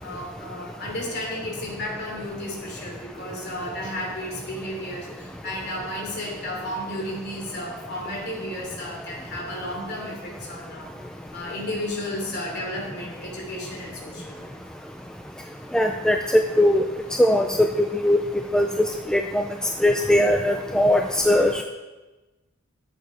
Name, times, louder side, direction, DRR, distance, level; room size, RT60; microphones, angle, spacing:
voice 1, 0.0-10.9 11.3-14.5, left 1 dB, 45° left, -1 dB, 3.4 m, -33 dB
voice 2, 15.7-16.2 16.6-16.8 17.2-17.5 18.0-18.2 18.5-18.7 19.1-19.4 19.8-21.6, left 1 dB, 5° left, 4 dB, 0.4 m, -19 dB
12.5 x 8.0 x 4.9 m, 1.2 s
head